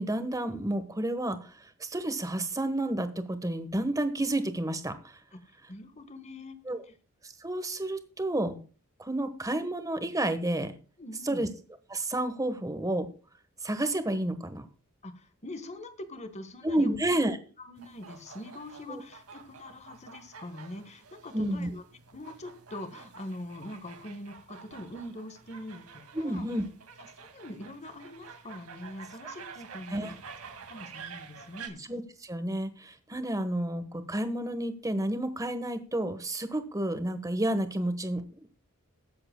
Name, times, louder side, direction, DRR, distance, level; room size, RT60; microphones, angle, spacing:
voice 1, 0.0-5.2 6.7-6.8 7.2-8.6 9.0-10.7 11.2-11.5 11.9-13.1 13.6-14.7 16.6-17.4 18.9-19.0 21.3-21.7 26.1-26.6 29.9-30.1 31.9-38.2, right 1 dB, 15° right, 10 dB, 1.2 m, -30 dB
voice 2, 5.3-6.6 6.8-6.9 11.0-11.5 15.0-17.0 17.6-21.8 22.1-26.4 27.2-30.1 30.7-31.8, left 1 dB, 30° left, 11 dB, 1.4 m, -43 dB
sound 1, 17.8-31.7, right 5 dB, 75° right, 2.1 m, -49 dB
21.0 x 7.8 x 2.2 m, 0.38 s
head